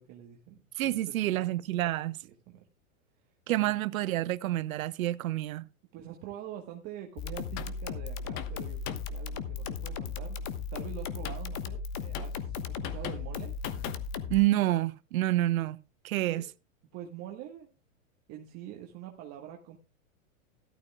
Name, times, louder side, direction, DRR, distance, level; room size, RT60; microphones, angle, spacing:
voice 1, 0.0-1.5 2.5-2.7 3.3-3.8 5.9-10.4 10.7-13.5 16.3-16.5 16.9-17.7 18.3-19.8, right 11 dB, 40° right, 1.4 m, -45 dB
voice 2, 0.8-2.2 3.5-5.7 14.3-15.8 16.0-16.4, right 15 dB, 75° right, 0.7 m, -28 dB
sound 1, 7.2-14.4, left 5 dB, 40° left, 1.2 m, -36 dB
14.0 x 12.5 x 2.3 m
hypercardioid pair, 120°, 42 cm